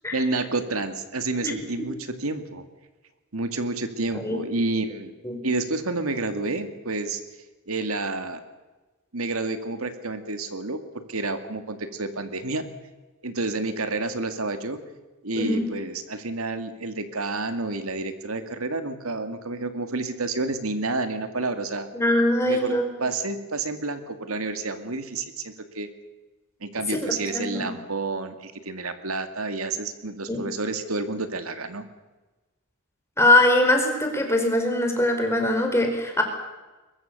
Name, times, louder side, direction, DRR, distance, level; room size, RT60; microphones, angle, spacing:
voice 1, 0.1-2.6 3.3-5.1 5.4-7.2 7.7-8.4 9.1-12.7 13.2-14.8 15.2-21.9 22.5-22.7 23.0-25.9 26.6-31.8, right 3 dB, 85° right, 8 dB, 2.3 m, -29 dB
voice 2, 15.4-15.7 21.9-22.9 26.9-27.7 30.3-30.4 33.2-36.2, left 1 dB, 15° left, 3 dB, 4.7 m, -22 dB
22.5 x 22.0 x 6.8 m, 1.2 s
head